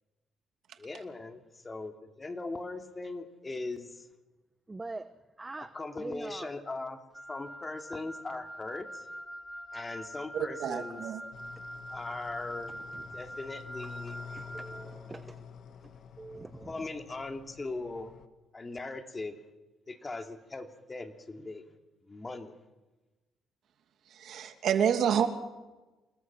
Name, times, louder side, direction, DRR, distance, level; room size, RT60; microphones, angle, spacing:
voice 1, 0.8-4.1 5.6-7.0 7.3-9.1 9.7-11.0 11.9-12.7 13.1-14.2 16.7-18.1 18.5-19.4 19.9-21.6 22.0-22.5, left 3 dB, 25° left, 2.7 m, -39 dB
voice 2, 4.7-5.1 5.4-6.5 11.5-11.7 12.7-13.2 14.1-15.5 15.8-16.9, right 2 dB, 20° right, 1.1 m, -44 dB
Wind instrument woodwind instrument, 7.1-14.9, equal, ahead, 3.1 m, -44 dB
voice 3, 10.3-11.2 24.1-25.3, right 8 dB, 65° right, 2.6 m, -28 dB
sound 1, 11.3-18.3, left 6 dB, 60° left, 1.5 m, -49 dB
28.5 x 20.0 x 6.1 m
cardioid pair, 80°, 0 cm